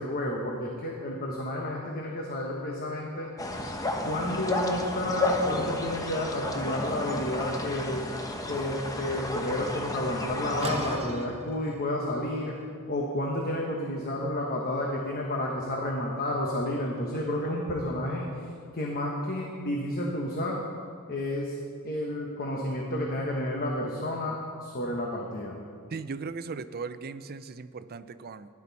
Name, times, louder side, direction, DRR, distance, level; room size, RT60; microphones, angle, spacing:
voice 1, 0.0-3.3 4.0-8.0 8.5-12.5 12.9-18.3 18.7-20.6 21.1-21.5 21.8-25.6, left 1 dB, 45° left, -1 dB, 1.2 m, -31 dB
sound 1, 3.4-11.0, left 2 dB, 15° left, 0.8 m, -32 dB
sound 2, 10.6-16.2, right 2 dB, 30° right, 0.9 m, -42 dB
voice 2, 25.9-28.5, right 4 dB, 45° right, 12 dB, 0.5 m, -38 dB
16.0 x 11.0 x 4.1 m, 2.3 s
head